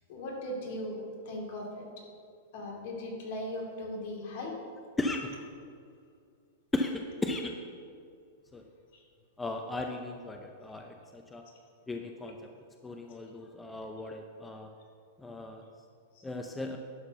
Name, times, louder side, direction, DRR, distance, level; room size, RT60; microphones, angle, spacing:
voice 1, 0.1-1.8 2.5-4.5, left 1 dB, 60° left, -1 dB, 2.6 m, -38 dB
voice 2, 5.0-5.4 6.7-7.6 8.5-8.6 9.4-11.4 11.9-12.4 12.8-14.7 15.2-15.6 16.2-16.8, left 2 dB, 10° left, 3 dB, 0.6 m, -36 dB
11.5 x 4.4 x 6.8 m, 2.3 s
hypercardioid pair, 120°, 0 cm